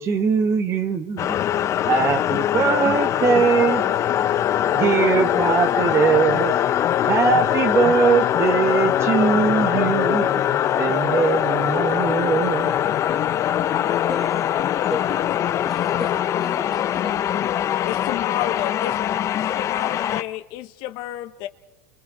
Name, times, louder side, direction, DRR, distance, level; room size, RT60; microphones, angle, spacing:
voice 1, 0.0-1.4 1.9-3.8 4.7-6.5 7.1-10.4 10.8-12.7, right 6 dB, 30° right, 9 dB, 1.3 m, -21 dB
sound 1, 1.2-20.2, left 11 dB, 35° left, 0.7 m, -22 dB
voice 2, 14.1-15.2 15.6-17.7, left 2 dB, ahead, 5 dB, 2.2 m, -36 dB
voice 3, 17.8-19.0 19.4-21.5, left 14 dB, 55° left, 10 dB, 1.0 m, -31 dB
27.5 x 23.5 x 4.3 m, 1.0 s
supercardioid pair, 125°, 9 cm